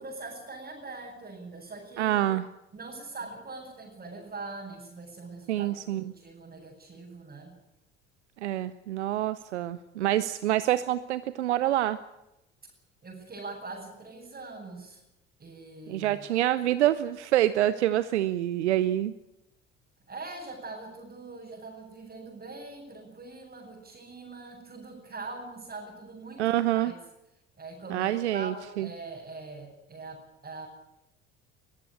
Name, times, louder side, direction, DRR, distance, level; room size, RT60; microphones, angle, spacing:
voice 1, 0.0-2.2 2.7-7.6 13.0-15.0 15.4-16.3 20.1-27.0 27.6-30.7, right 3 dB, 25° right, -3 dB, 7.1 m, -42 dB
voice 2, 2.0-2.4 5.5-6.1 8.4-12.0 15.9-19.1 26.4-26.9 27.9-28.9, right 13 dB, 75° right, 15 dB, 0.8 m, -26 dB
22.0 x 14.5 x 9.7 m, 0.91 s
figure-of-eight pair, 60°, 34 cm